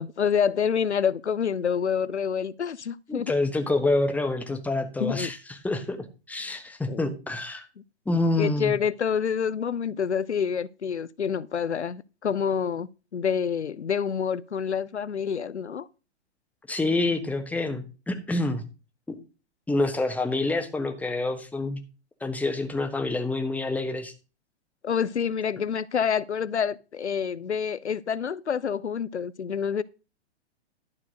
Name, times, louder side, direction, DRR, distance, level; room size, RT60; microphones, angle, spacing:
voice 1, 0.0-3.3 5.0-5.3 6.9-7.1 8.4-15.9 24.8-29.8, left 7 dB, 90° left, 0.6 m, -27 dB
voice 2, 3.1-7.7 8.1-8.7 16.7-18.6 19.1-19.2 19.7-21.8 22.2-24.1, left 2 dB, 5° left, 1.3 m, -27 dB
12.0 x 4.5 x 6.4 m
figure-of-eight pair, 115°, 33 cm